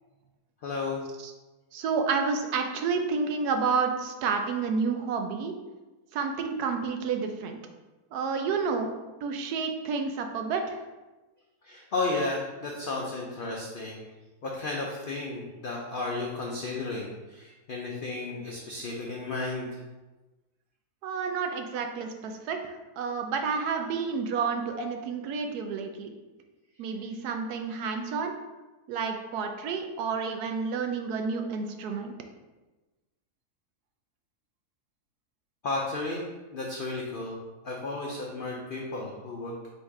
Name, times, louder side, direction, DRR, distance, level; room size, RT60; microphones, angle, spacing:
voice 1, 0.6-1.0 11.6-14.0 14.4-19.7 24.8-24.9 35.6-36.2 36.5-37.4 37.6-39.6, left 3 dB, 80° left, -2 dB, 0.4 m, -33 dB
voice 2, 1.7-5.6 6.1-7.6 8.1-8.9 9.2-10.8 21.0-26.1 26.8-28.3 28.9-32.1, right 5 dB, 85° right, 5 dB, 1.1 m, -30 dB
3.9 x 2.5 x 4.6 m, 1.1 s
omnidirectional pair, 1.6 m